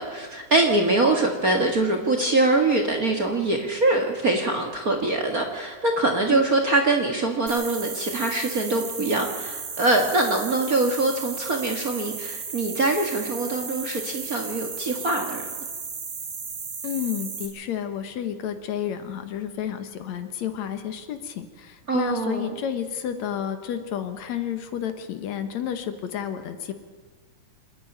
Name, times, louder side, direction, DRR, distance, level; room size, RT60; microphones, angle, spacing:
voice 1, 0.0-15.4 21.9-22.6, right 2 dB, 35° right, 3 dB, 1.6 m, -23 dB
sound 1, 7.5-17.5, right 5 dB, 80° right, 4.6 m, -35 dB
voice 2, 16.8-26.7, left 9 dB, 70° left, 9 dB, 2.4 m, -31 dB
27.0 x 10.0 x 10.0 m, 1.4 s
omnidirectional pair, 3.5 m